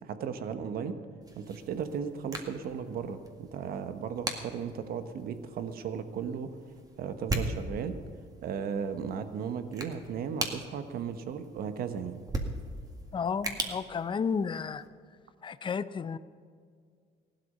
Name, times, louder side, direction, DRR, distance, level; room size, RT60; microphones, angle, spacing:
voice 1, 0.0-1.0 1.4-6.5 7.0-8.0 8.4-12.2, right 7 dB, 65° right, 9 dB, 1.2 m, -36 dB
sound 1, 1.2-14.9, right 2 dB, 20° right, 1.9 m, -40 dB
voice 2, 13.1-14.8 15.4-16.2, left 6 dB, 30° left, 13 dB, 0.6 m, -32 dB
17.0 x 12.0 x 5.5 m, 2.1 s
cardioid pair, 110°, 17 cm